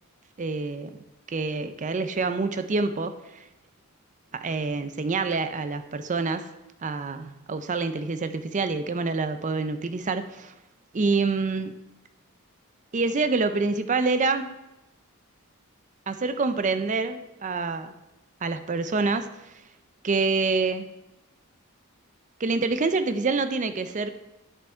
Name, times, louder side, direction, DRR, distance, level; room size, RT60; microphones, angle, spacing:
voice 1, 0.4-1.0 1.3-3.4 4.3-6.5 6.8-10.5 10.9-11.7 12.9-14.5 16.1-17.9 18.4-19.5 20.0-20.9 22.4-24.1, right 4 dB, 35° right, 10 dB, 0.5 m, -27 dB
10.0 x 7.2 x 4.4 m, 0.95 s
head